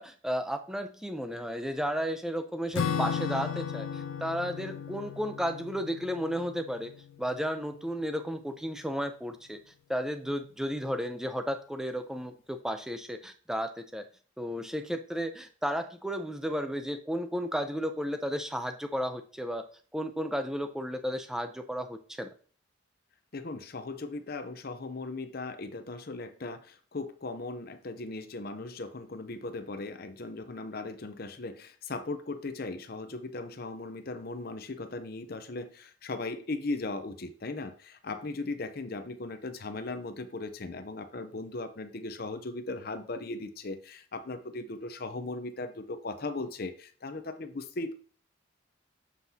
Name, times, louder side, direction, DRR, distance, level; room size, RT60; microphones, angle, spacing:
voice 1, 0.0-6.9 7.2-9.6 9.9-14.0 14.4-19.6 19.9-22.3, equal, 5° right, 7 dB, 0.6 m, -33 dB
Acoustic guitar / Strum, 2.7-7.5, left 7 dB, 85° left, 0.5 m, -35 dB
voice 2, 23.3-47.9, left 2 dB, 45° left, 9 dB, 0.6 m, -38 dB
7.4 x 5.9 x 2.8 m, 0.42 s
head